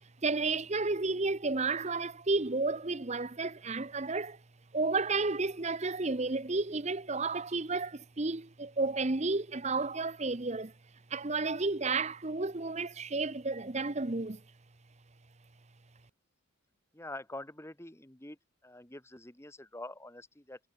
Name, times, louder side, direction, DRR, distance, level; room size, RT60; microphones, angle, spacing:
voice 1, 0.2-4.4 4.7-10.7 11.1-14.4, right 3 dB, 30° right, 0.9 m, -32 dB
voice 2, 16.9-18.4 18.6-20.6, left 1 dB, 10° left, 1.5 m, -45 dB
head